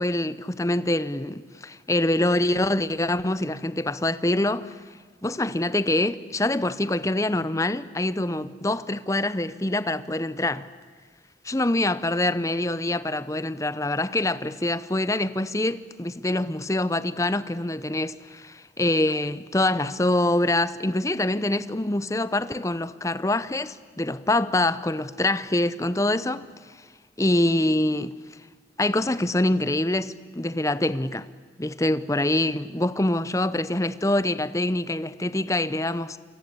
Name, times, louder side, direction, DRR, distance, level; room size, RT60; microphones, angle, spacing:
voice 1, 0.0-4.7 5.2-10.7 11.5-26.5 27.2-28.1 28.8-31.3 31.6-36.2, left 1 dB, 15° left, 0.8 m, -25 dB
28.0 x 24.0 x 8.5 m
head